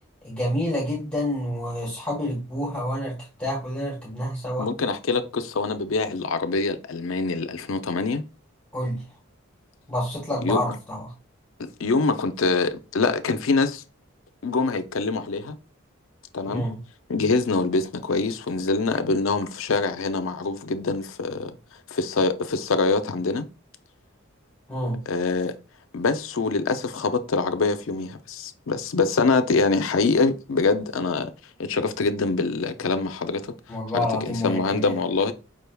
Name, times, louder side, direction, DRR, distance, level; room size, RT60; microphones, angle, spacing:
voice 1, 0.2-4.7 8.7-9.0 9.9-11.1 16.5-16.8 24.7-25.0 33.7-34.9, left 1 dB, 5° left, 1.3 m, -28 dB
voice 2, 4.6-8.2 10.4-10.6 11.8-13.8 14.4-15.6 16.3-16.6 17.1-21.5 21.9-23.5 25.1-25.6 25.9-31.3 31.6-33.5 33.9-35.3, left 3 dB, 70° left, 0.5 m, -24 dB
5.0 x 3.3 x 2.2 m
head